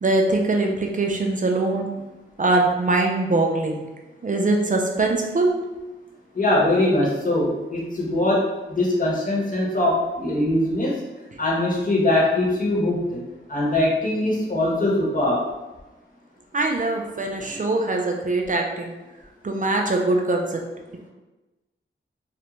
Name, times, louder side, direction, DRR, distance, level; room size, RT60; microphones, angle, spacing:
voice 1, 0.0-1.9 2.4-3.8 4.2-5.6 16.5-18.9 19.4-20.6, right 2 dB, 40° right, 1 dB, 0.4 m, -22 dB
voice 2, 6.3-11.0 11.4-13.2 13.5-15.5, left 1 dB, 40° left, -5 dB, 1.0 m, -22 dB
2.4 x 2.1 x 3.0 m, 1.1 s
cardioid pair, 50°, 21 cm